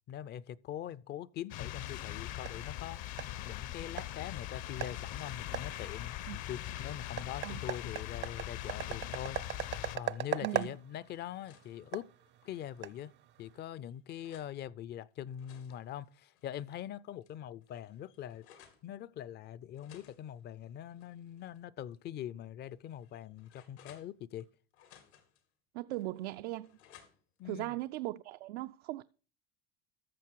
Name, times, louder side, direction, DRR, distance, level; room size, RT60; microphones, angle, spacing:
voice 1, 0.1-3.0 3.4-9.4 9.9-12.1 12.4-13.1 13.4-18.5 18.8-24.5 27.4-27.7, left 11 dB, 35° left, 0.4 m, -43 dB
sound 1, 1.5-10.0, left 14 dB, 60° left, 0.9 m, -41 dB
sound 2, 1.8-13.6, right 12 dB, 35° right, 0.5 m, -42 dB
sound 3, 10.0-10.8 11.2-12.8 13.4-14.5 15.1-16.9 17.2-17.3 17.6-18.9 19.7-21.6 21.9-22.0 22.6-24.5 24.7-25.4 25.9-27.4, left 9 dB, 90° left, 2.5 m, -62 dB
voice 2, 10.4-10.8 25.7-26.7 27.4-29.0, right 17 dB, 90° right, 0.5 m, -38 dB
13.5 x 6.7 x 4.6 m
supercardioid pair, 125°, 31 cm